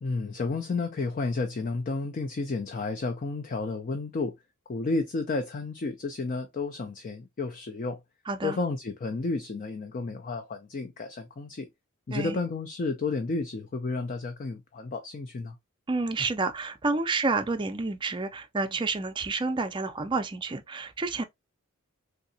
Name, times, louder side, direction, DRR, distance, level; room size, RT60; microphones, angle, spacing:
voice 1, 0.0-4.3 4.7-8.0 8.4-11.7 12.1-15.6, left 3 dB, 40° left, 0.4 m, -31 dB
voice 2, 8.3-8.6 12.1-12.4 15.9-21.2, right 3 dB, 20° right, 0.4 m, -29 dB
3.5 x 2.8 x 2.6 m
head